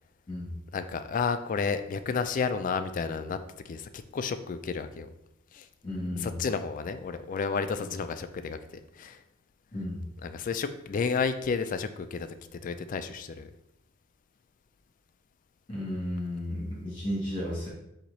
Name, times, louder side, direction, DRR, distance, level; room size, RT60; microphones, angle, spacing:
voice 1, 0.7-3.4 3.7-5.1 5.5-5.7 6.2-9.2 10.2-13.5, left 5 dB, 40° left, 10 dB, 0.3 m, -31 dB
voice 2, 5.8-6.4 7.8-7.9 9.7-10.1 15.7-17.7, left 1 dB, 25° left, -4 dB, 1.7 m, -33 dB
4.5 x 2.9 x 4.0 m, 0.84 s
head